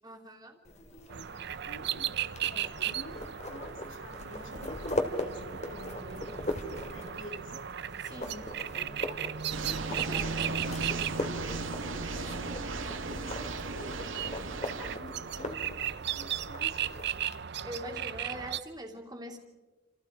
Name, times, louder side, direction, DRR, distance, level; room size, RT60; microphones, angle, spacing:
voice 1, 0.0-0.6 8.0-8.4 9.9-10.3 12.5-12.6 17.6-19.4, right 1 dB, 20° right, -3 dB, 2.8 m, -43 dB
sound 1, 0.6-17.4, left 1 dB, 35° left, 2.7 m, -40 dB
voice 2, 0.9-1.3 1.7-6.5 6.9-7.6 8.0-17.0, left 2 dB, 75° left, 6 dB, 3.1 m, -49 dB
sound 2, 1.1-18.6, right 9 dB, 55° right, 0.7 m, -36 dB
sound 3, 9.5-15.0, right 3 dB, 80° right, 2.0 m, -37 dB
29.0 x 28.0 x 5.0 m, 1.3 s
head